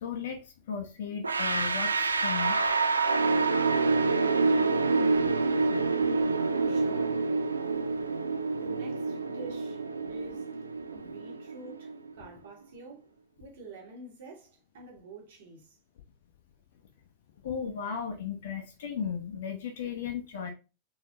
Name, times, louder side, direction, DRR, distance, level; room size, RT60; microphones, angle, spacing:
voice 1, 0.0-2.6 6.0-6.1 17.4-20.5, left 7 dB, 60° left, 0.6 m, -35 dB
sound 1, 1.2-12.1, right 3 dB, 75° right, 0.3 m, -27 dB
voice 2, 6.5-7.2 8.5-9.8 10.1-10.5 10.9-13.1 13.4-15.8, right 2 dB, 60° right, 1.6 m, -48 dB
4.0 x 3.8 x 2.8 m
figure-of-eight pair, 90°, 0 cm